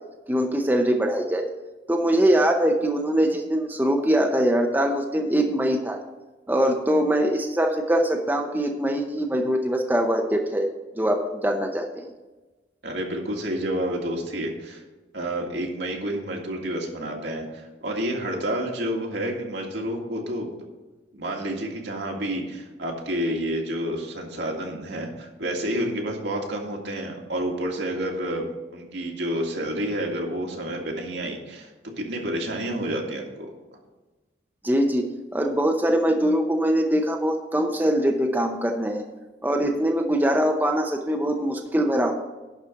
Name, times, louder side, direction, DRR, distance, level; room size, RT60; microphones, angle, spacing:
voice 1, 0.3-1.5 1.9-6.0 6.5-10.7 11.0-12.1 34.6-39.0 39.4-42.1, right 1 dB, 10° right, 3 dB, 0.7 m, -22 dB
voice 2, 12.8-14.8 15.1-20.5 21.1-31.7 32.0-33.5, right 1 dB, 75° right, 0 dB, 2.1 m, -29 dB
11.0 x 4.3 x 7.7 m, 1.2 s
head